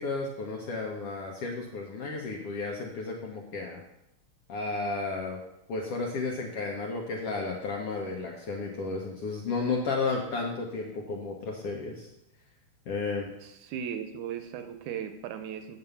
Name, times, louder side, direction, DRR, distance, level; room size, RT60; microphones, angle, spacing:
voice 1, 0.0-3.8 4.5-5.4 5.7-12.1 12.9-13.3, left 3 dB, 70° left, 0 dB, 1.5 m, -33 dB
voice 2, 13.4-15.8, right 8 dB, 80° right, 8 dB, 1.9 m, -37 dB
7.9 x 5.5 x 6.9 m, 0.86 s
omnidirectional pair, 3.7 m